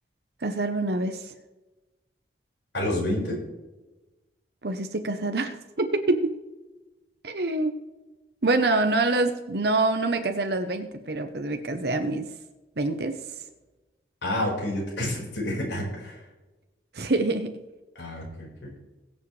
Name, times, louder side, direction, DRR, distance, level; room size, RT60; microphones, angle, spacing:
voice 1, 0.4-1.3 4.6-6.4 7.2-7.8 8.4-12.3 12.8-13.2 16.9-17.6, right 2 dB, 60° right, 6 dB, 0.9 m, -26 dB
voice 2, 2.7-3.4 14.2-16.2 17.9-18.8, left 1 dB, 75° left, -2 dB, 4.9 m, -29 dB
22.0 x 7.5 x 3.3 m, 1.1 s
head